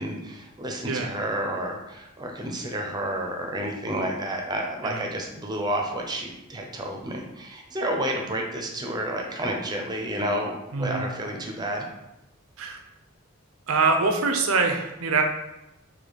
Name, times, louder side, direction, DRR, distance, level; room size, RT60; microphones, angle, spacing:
voice 1, 0.0-11.8, right 1 dB, 20° right, 1 dB, 0.6 m, -30 dB
voice 2, 10.7-11.1 12.6-12.8 13.7-15.2, right 4 dB, 90° right, 4 dB, 0.6 m, -24 dB
4.9 x 2.7 x 4.0 m, 0.93 s
head